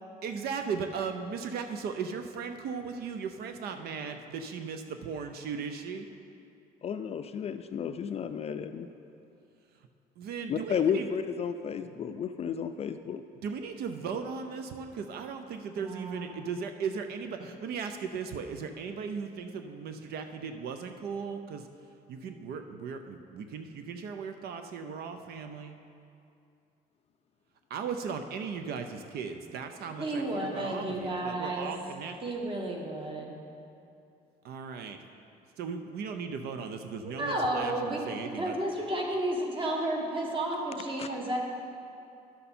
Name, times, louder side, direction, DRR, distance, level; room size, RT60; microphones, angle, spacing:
voice 1, 0.2-6.1 10.2-11.1 13.4-21.7 22.1-25.7 27.7-32.2 34.4-35.0 35.6-38.5, right 6 dB, 70° right, 7 dB, 0.5 m, -37 dB
voice 2, 6.8-8.9 10.5-13.2 41.0-41.1, left 7 dB, 40° left, 9 dB, 0.4 m, -32 dB
voice 3, 15.8-16.4 30.0-31.7 32.2-33.4 37.2-41.4, right 1 dB, 30° right, 0 dB, 1.5 m, -32 dB
11.0 x 6.7 x 4.2 m, 2.6 s
cardioid pair, 110°, 17 cm